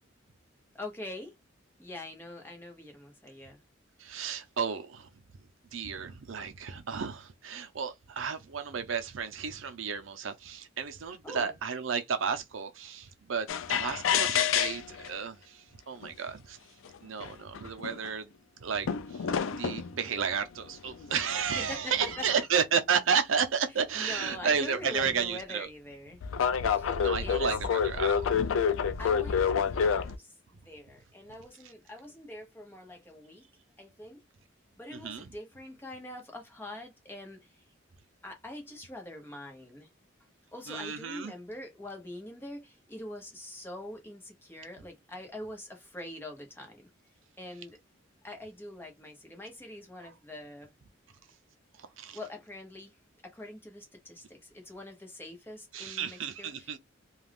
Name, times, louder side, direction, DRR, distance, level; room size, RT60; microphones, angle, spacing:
voice 1, 0.7-1.3 1.8-3.6 11.1-11.5 21.5-22.3 23.9-26.2 26.7-26.9 27.2-27.4 29.0-30.3 30.6-33.5 33.8-34.2 34.8-37.5 38.2-39.9 40.5-46.9 47.4-47.8 48.2-50.7 52.1-52.9 53.2-56.8, left 1 dB, 10° left, 1.0 m, -44 dB
voice 2, 4.0-5.1 5.7-16.6 17.0-18.3 18.6-19.2 19.5-25.7 27.0-28.3 34.9-35.3 40.7-41.3 50.0-50.1 51.8-52.2 55.7-56.8, right 6 dB, 85° right, 0.6 m, -32 dB
sound 1, 13.5-15.1 16.0-16.1 16.9-17.0 17.2-18.1 18.9-19.9 20.9-22.4 25.0-25.2 26.2-30.1, left 7 dB, 85° left, 0.4 m, -28 dB
2.4 x 2.4 x 3.4 m
head